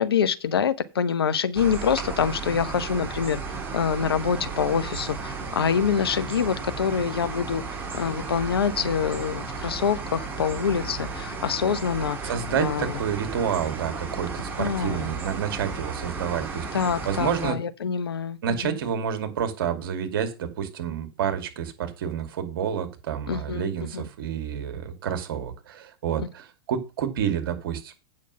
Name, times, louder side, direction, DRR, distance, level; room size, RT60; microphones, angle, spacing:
voice 1, 0.0-7.6 7.9-13.0 14.6-15.1 16.7-18.8 23.3-23.7 23.9-24.0, left 7 dB, 75° left, 0.9 m, -26 dB
sound 1, 1.5-17.5, right 4 dB, 15° right, 3.9 m, -34 dB
voice 2, 12.2-17.6 18.4-27.9, right 8 dB, 60° right, 2.4 m, -29 dB
8.8 x 6.3 x 5.6 m
figure-of-eight pair, 100°, 13 cm